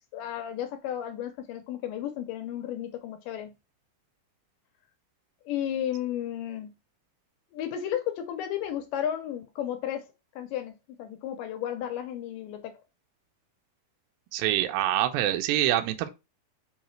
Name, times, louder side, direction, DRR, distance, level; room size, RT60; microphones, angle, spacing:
voice 1, 0.1-3.5 5.5-6.7 7.5-10.1 10.4-12.8, left 10 dB, 80° left, 1.9 m, -33 dB
voice 2, 14.3-16.1, right 13 dB, 80° right, 2.3 m, -25 dB
5.7 x 2.7 x 3.1 m
omnidirectional pair, 4.4 m